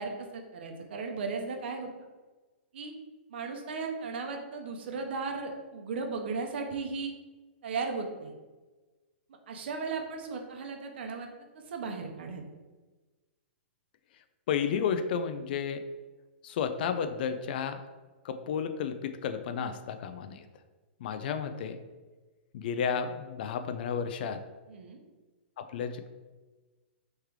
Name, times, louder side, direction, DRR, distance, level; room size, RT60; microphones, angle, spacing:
voice 1, 0.0-1.9 2.7-2.9 3.3-7.1 7.6-8.3 9.5-11.3 11.5-12.4 21.3-21.7 24.7-25.0, right 4 dB, 65° right, 3 dB, 0.8 m, -36 dB
voice 2, 14.5-15.8 16.4-17.8 18.2-20.4 21.0-21.8 22.5-24.4 25.6-26.1, left 7 dB, 55° left, 9 dB, 0.4 m, -32 dB
3.5 x 3.2 x 4.6 m, 1.2 s
hypercardioid pair, 155°, 6 cm